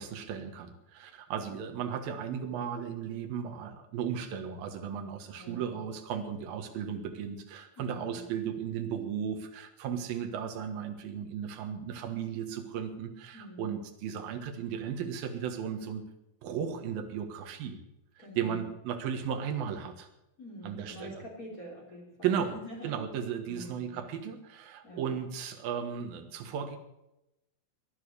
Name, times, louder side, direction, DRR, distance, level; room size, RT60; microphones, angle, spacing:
voice 1, 0.0-16.0 16.4-17.8 18.2-20.1 20.6-21.2 22.2-22.5 22.8-26.8, right 8 dB, 75° right, 5 dB, 3.2 m, -35 dB
voice 2, 5.4-5.8 6.3-6.4 7.8-8.3 13.3-13.7 18.2-18.6 20.4-23.0 23.5-24.0 24.8-25.1, equal, 25° left, -1 dB, 3.5 m, -46 dB
18.5 x 11.0 x 6.5 m, 0.88 s
omnidirectional pair, 4.3 m